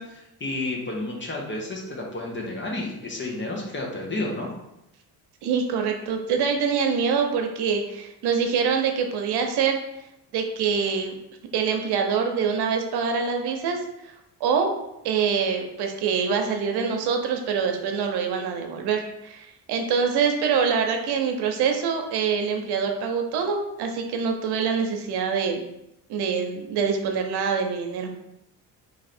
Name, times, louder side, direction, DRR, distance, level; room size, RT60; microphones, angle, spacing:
voice 1, 0.0-4.5, left 2 dB, 30° left, -2 dB, 1.0 m, -31 dB
voice 2, 5.4-9.8 10.3-11.1 11.5-14.1 14.4-14.7 15.0-25.6 26.1-28.1, right 6 dB, 75° right, 4 dB, 0.7 m, -25 dB
3.3 x 2.6 x 4.2 m, 0.85 s
cardioid pair, 80°, 39 cm